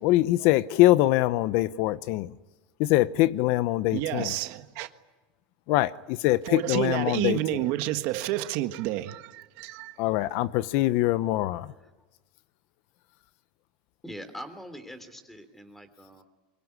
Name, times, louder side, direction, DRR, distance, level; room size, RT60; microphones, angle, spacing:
voice 1, 0.0-2.3 2.8-4.3 5.7-7.6 10.0-11.7, left 16 dB, 65° left, 0.8 m, -23 dB
voice 2, 3.9-4.9 6.4-9.9, right 15 dB, 65° right, 1.5 m, -30 dB
voice 3, 14.0-16.2, equal, 5° left, 3.2 m, -43 dB
24.0 x 23.0 x 9.8 m
supercardioid pair, 135°, 4 cm